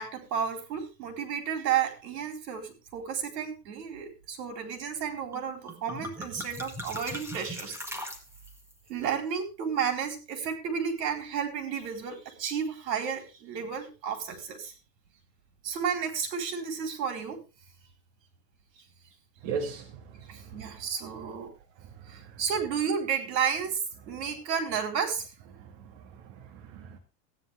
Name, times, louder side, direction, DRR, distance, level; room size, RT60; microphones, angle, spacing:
voice 1, 0.0-7.8 8.9-14.7 15.6-17.4 20.3-21.5 22.1-25.3, right 7 dB, 85° right, 4.4 m, -32 dB
sound 1, 5.3-5.4 5.7-8.7, equal, 5° right, 1.7 m, -40 dB
voice 2, 19.4-20.9 21.8-22.4 25.5-27.0, right 5 dB, 50° right, 2.0 m, -39 dB
15.5 x 10.0 x 3.5 m
supercardioid pair, 145°, 49 cm